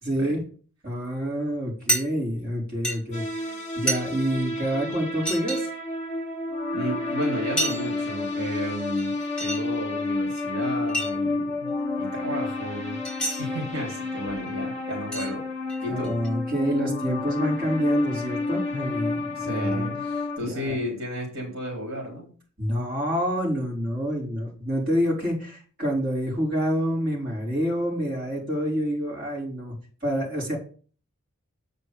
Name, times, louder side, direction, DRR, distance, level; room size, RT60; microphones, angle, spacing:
voice 1, 0.0-0.4 0.8-5.7 15.9-19.9 20.4-20.8 22.6-29.7 30.0-30.6, equal, 40° right, -5 dB, 4.5 m, -27 dB
sound 1, 1.9-2.0 2.8-3.0 3.9-4.0 4.9-5.0 5.2-5.6 7.2-7.3 7.6-7.9 8.8-9.6 10.3-10.4 10.9-11.1 13.0-13.4 14.5-14.6 15.1-15.3 15.7-16.3, right 1 dB, 5° left, 3.0 m, -28 dB
sound 2, 3.1-20.4, left 3 dB, 30° left, 1.5 m, -30 dB
voice 2, 6.7-13.0 13.4-15.5 15.8-16.2 19.3-20.0 20.4-22.3, equal, 75° right, -1 dB, 3.5 m, -33 dB
7.8 x 5.2 x 6.7 m, 0.41 s
head